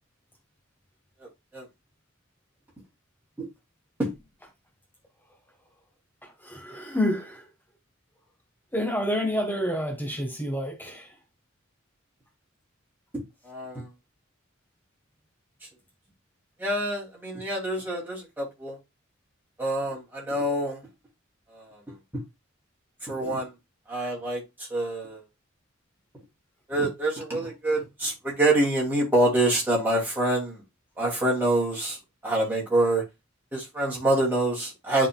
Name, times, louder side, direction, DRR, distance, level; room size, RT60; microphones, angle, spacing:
voice 1, 6.4-7.5 8.7-11.1, equal, 10° left, 1.4 m, -28 dB
voice 2, 13.1-13.8 16.6-18.8 19.6-20.8 21.5-21.6 23.0-23.5 23.9-24.4 24.7-25.2 26.7-30.6 31.0-32.0 32.2-33.0 33.5-35.1, right 1 dB, 10° right, 2.6 m, -26 dB
11.0 x 3.8 x 2.3 m
head